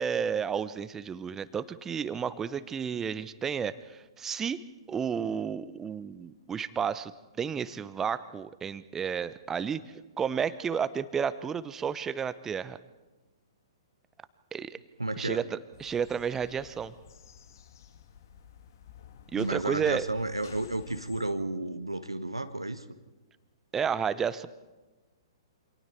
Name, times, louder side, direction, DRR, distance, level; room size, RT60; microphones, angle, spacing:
voice 1, 0.0-7.1 7.4-9.8 10.2-12.8 14.5-14.8 15.2-16.9 19.3-20.0 23.7-24.5, right 7 dB, 15° right, 15 dB, 0.8 m, -32 dB
voice 2, 15.0-15.4 19.3-22.8, right 2 dB, 85° right, 10 dB, 1.4 m, -32 dB
sound 1, 15.7-21.3, left 8 dB, 50° left, 1.6 m, -53 dB
28.0 x 26.5 x 4.5 m, 1.2 s
figure-of-eight pair, 115°, 3 cm